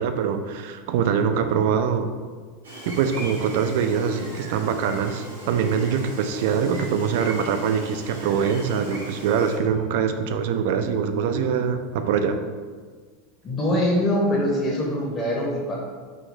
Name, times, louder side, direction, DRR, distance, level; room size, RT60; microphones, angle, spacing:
voice 1, 0.0-2.1 2.9-12.4, right 7 dB, 60° right, 8 dB, 0.3 m, -23 dB
Gull seagull, 2.6-9.6, equal, 85° right, 1.1 m, -39 dB
voice 2, 13.4-15.9, left 1 dB, 25° left, -4 dB, 0.8 m, -23 dB
5.0 x 2.7 x 2.6 m, 1.5 s
figure-of-eight pair, 80°, 0 cm